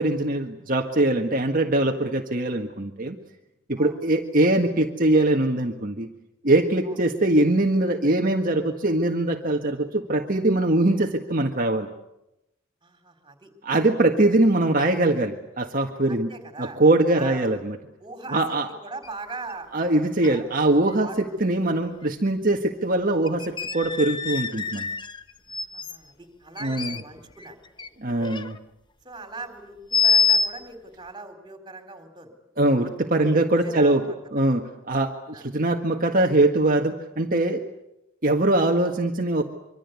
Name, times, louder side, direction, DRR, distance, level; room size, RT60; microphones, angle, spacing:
voice 1, 0.0-3.2 3.7-6.1 6.4-11.9 13.6-16.3 16.6-17.8 18.3-18.7 19.7-24.9 26.6-27.0 28.0-28.6 32.6-34.0 34.3-37.6 38.2-39.4, right 2 dB, 40° right, 3 dB, 1.7 m, -22 dB
voice 2, 12.8-13.5 16.1-16.8 17.1-17.5 18.0-20.0 20.3-20.5 21.0-21.4 25.5-27.6 28.2-28.4 29.0-32.3 33.2-34.1 35.3-35.5, right 3 dB, 20° right, 7 dB, 4.2 m, -40 dB
sound 1, 19.0-19.1 19.5-19.6 20.2-20.5 20.9-21.0 22.5-22.6 23.3-26.0 26.6-27.9 28.1-28.6 29.9-30.5, left 5 dB, 20° left, 1.0 m, -25 dB
25.5 x 24.5 x 8.3 m, 0.88 s
head